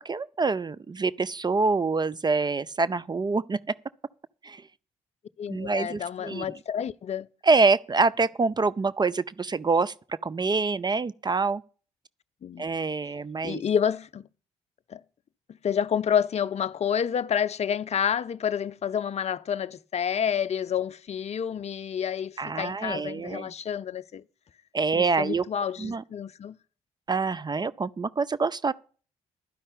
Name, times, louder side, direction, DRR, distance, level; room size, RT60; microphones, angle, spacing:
voice 1, 0.0-3.6 4.4-4.6 5.5-6.5 7.4-11.6 12.6-13.6 22.4-23.5 24.7-25.4 25.8-26.0 27.1-28.7, right 4 dB, 25° right, 0.5 m, -26 dB
voice 2, 5.4-7.3 12.4-12.7 13.4-14.3 14.9-15.0 15.6-24.2 24.9-26.6, left 8 dB, 40° left, 0.6 m, -29 dB
11.5 x 5.4 x 8.5 m
hypercardioid pair, 45°, 16 cm